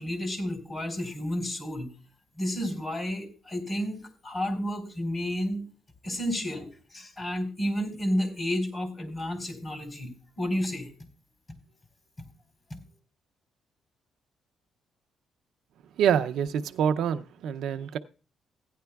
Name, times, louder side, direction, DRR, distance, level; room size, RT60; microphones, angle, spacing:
voice 1, 0.0-1.9 2.4-5.7 6.0-10.9 12.7-12.8, equal, 35° left, 7 dB, 3.8 m, -31 dB
voice 2, 16.0-18.0, right 8 dB, 80° right, 9 dB, 0.5 m, -26 dB
16.0 x 10.0 x 2.3 m, 0.35 s
cardioid pair, 90°, 0 cm